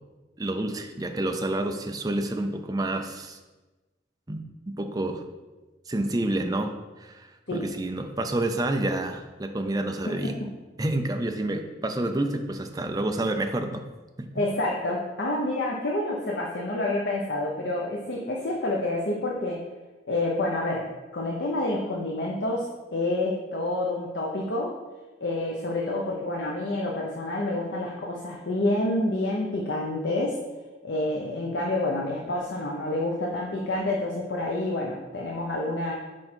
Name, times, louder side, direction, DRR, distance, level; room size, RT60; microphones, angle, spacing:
voice 1, 0.4-3.4 4.3-4.4 4.7-5.2 5.9-10.4 10.8-13.8 14.2-14.5, right 1 dB, 20° right, 5 dB, 0.5 m, -29 dB
voice 2, 14.3-19.6 20.1-24.8 25.2-30.4 30.8-35.9, left 2 dB, 70° left, -2 dB, 0.8 m, -28 dB
6.3 x 5.0 x 4.4 m, 1.2 s
head